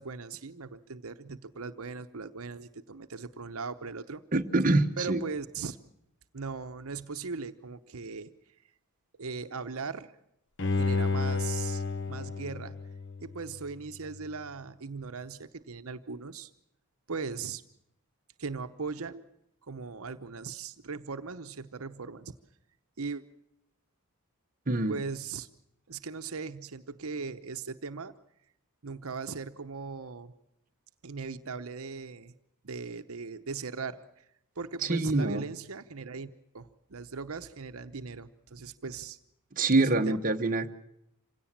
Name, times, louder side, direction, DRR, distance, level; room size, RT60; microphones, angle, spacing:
voice 1, 0.0-4.2 5.0-5.8 6.3-8.3 9.2-10.1 10.7-12.8 13.2-16.5 17.1-17.6 18.4-19.2 19.7-22.4 23.0-23.2 24.7-25.5 25.9-28.1 28.8-30.3 31.0-32.3 32.6-34.3 34.6-39.2 39.8-40.2 40.5-40.6, right 4 dB, 70° right, 9 dB, 0.9 m, -39 dB
voice 2, 4.3-5.2 24.7-25.0 34.9-35.4 39.5-40.7, right 2 dB, 40° right, 5 dB, 1.0 m, -25 dB
Bowed string instrument, 10.6-13.7 14.1-14.2, left 3 dB, 55° left, 0.8 m, -31 dB
26.5 x 17.0 x 7.4 m, 0.77 s
head